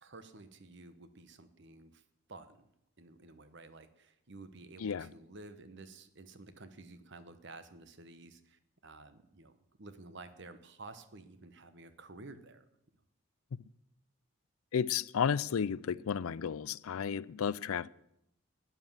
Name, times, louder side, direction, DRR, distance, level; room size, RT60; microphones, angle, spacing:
voice 1, 0.0-2.0 2.3-2.7 3.0-9.5 9.8-12.6, right 3 dB, 55° right, 1.1 m, -52 dB
voice 2, 4.8-5.1 14.7-17.9, left 7 dB, 80° left, 0.4 m, -33 dB
12.5 x 9.8 x 7.3 m
head